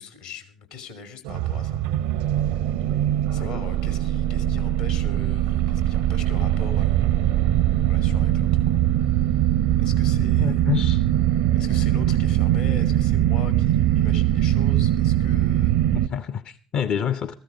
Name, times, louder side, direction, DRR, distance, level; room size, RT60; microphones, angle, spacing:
voice 1, 0.0-1.8 2.1-2.8 3.3-8.8 9.8-10.7 11.5-15.7, left 5 dB, 75° left, 2.6 m, -41 dB
sound 1, 1.2-16.1, right 12 dB, 65° right, 0.6 m, -21 dB
voice 2, 10.4-11.1 15.9-17.4, left 8 dB, 45° left, 0.6 m, -28 dB
14.5 x 13.5 x 5.0 m
figure-of-eight pair, 55°, 3 cm